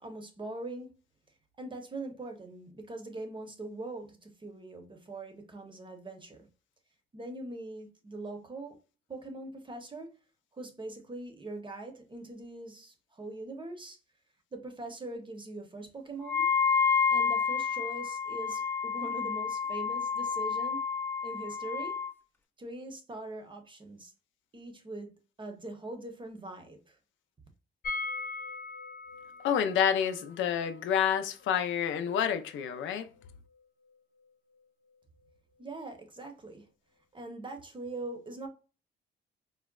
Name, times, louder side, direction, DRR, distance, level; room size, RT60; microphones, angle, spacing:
voice 1, 0.0-0.9 1.6-6.4 7.1-8.8 9.1-10.1 10.5-14.0 14.5-16.5 17.1-20.8 21.2-22.0 22.6-24.1 24.5-25.1 25.4-27.0 35.6-36.7 37.1-38.5, right 2 dB, 25° right, 0.8 m, -42 dB
Wind instrument woodwind instrument, 16.2-22.1, left 6 dB, 10° left, 0.4 m, -29 dB
sound 1, 27.8-33.6 33.9-34.0 34.2-34.3, left 3 dB, 50° left, 0.7 m, -42 dB
voice 2, 29.4-33.1, left 8 dB, 75° left, 0.4 m, -28 dB
3.9 x 2.0 x 2.2 m
cardioid pair, 90°, 20 cm